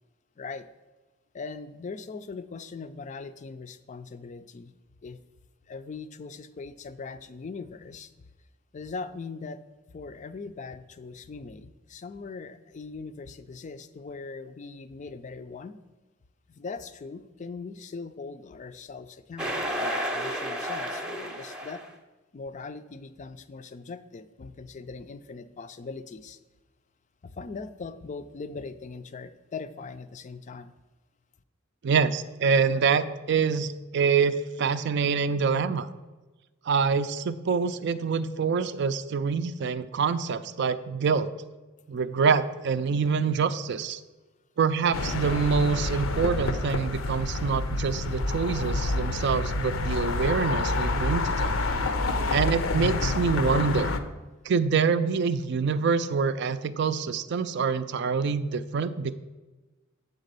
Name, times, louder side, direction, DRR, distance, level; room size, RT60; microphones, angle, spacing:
voice 1, 0.4-0.7 1.3-4.7 5.0-5.2 5.7-8.1 8.7-9.6 9.9-15.8 16.5-21.8 22.3-26.4 27.2-30.7, left 4 dB, 35° left, 12 dB, 0.4 m, -40 dB
sound 1, 19.4-21.9, equal, 5° right, 0.6 m, -31 dB
voice 2, 31.8-35.9 36.7-41.3 41.9-44.0 44.6-51.6 52.3-53.9 54.4-59.2, right 5 dB, 60° right, 13 dB, 0.4 m, -26 dB
sound 2, 44.9-54.0, left 3 dB, 80° left, 0.6 m, -28 dB
7.5 x 4.1 x 6.6 m, 1.2 s
head